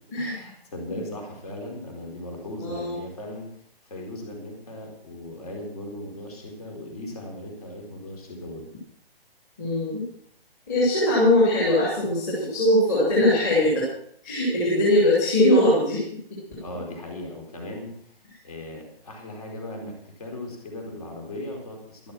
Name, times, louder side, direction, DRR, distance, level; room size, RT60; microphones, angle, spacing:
voice 1, 0.1-3.5 3.8-8.7 16.6-17.9 18.4-22.1, left 1 dB, 40° left, 1 dB, 4.3 m, -38 dB
voice 2, 2.6-3.0 9.6-10.0 10.7-13.8 14.2-16.0 16.5-16.6, left 1 dB, 15° left, -6 dB, 3.0 m, -21 dB
12.5 x 12.0 x 5.9 m, 0.64 s
hypercardioid pair, 175°, 31 cm